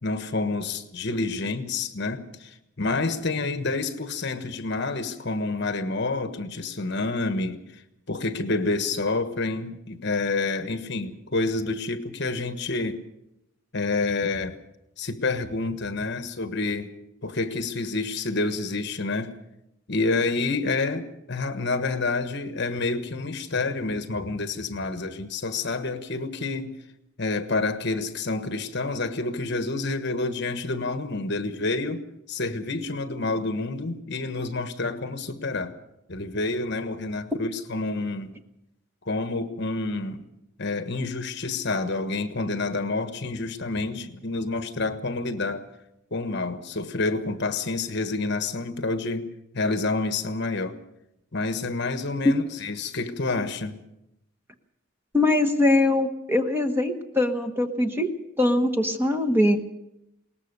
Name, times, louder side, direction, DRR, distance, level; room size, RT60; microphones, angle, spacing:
voice 1, 0.0-7.8 8.1-13.0 13.7-14.6 15.0-16.9 17.2-19.3 19.9-26.7 27.2-32.0 32.3-35.8 36.1-38.3 39.0-40.2 40.6-45.7 46.1-49.3 49.5-50.8 51.3-53.8, left 3 dB, 55° left, 1.3 m, -28 dB
voice 2, 55.1-58.1 58.4-59.6, left 2 dB, 10° right, 1.2 m, -22 dB
21.5 x 19.0 x 6.7 m
head